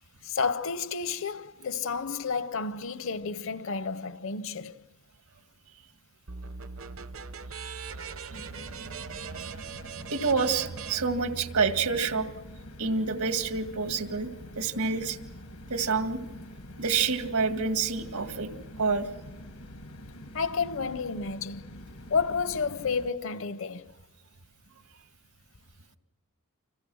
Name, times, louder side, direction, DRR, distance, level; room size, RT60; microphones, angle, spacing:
voice 1, 0.2-4.8 20.3-21.8 22.1-23.9, left 5 dB, 60° left, 0.8 m, -31 dB
sound 1, 6.3-11.9, right 5 dB, 65° right, 0.9 m, -40 dB
sound 2, 8.3-23.1, left 1 dB, 85° left, 1.6 m, -46 dB
voice 2, 10.1-12.3 12.8-14.3 14.5-15.2 15.7-16.2 16.8-18.5 18.8-19.1, right 4 dB, 90° right, 1.9 m, -27 dB
29.5 x 26.0 x 6.3 m
head